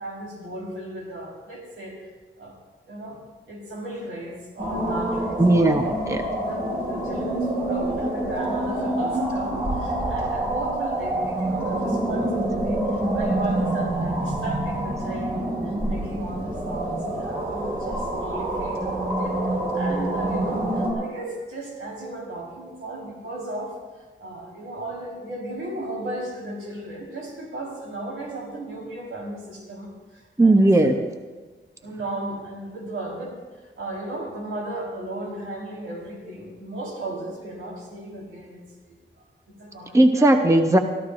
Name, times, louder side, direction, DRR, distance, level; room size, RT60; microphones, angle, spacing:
voice 1, 0.0-2.1 2.4-2.6 2.8-3.2 3.5-5.4 5.8-6.0 6.2-23.8 24.2-31.0 31.8-39.0 39.5-40.4, right 1 dB, 85° right, -2 dB, 4.2 m, -35 dB
sound 1, 4.6-20.9, right 1 dB, 45° right, 4.7 m, -26 dB
voice 2, 5.4-6.2 30.4-30.9 39.9-40.8, right 2 dB, 15° right, 5 dB, 0.8 m, -17 dB
25.0 x 13.5 x 2.6 m, 1.3 s
wide cardioid pair, 135°, 21 cm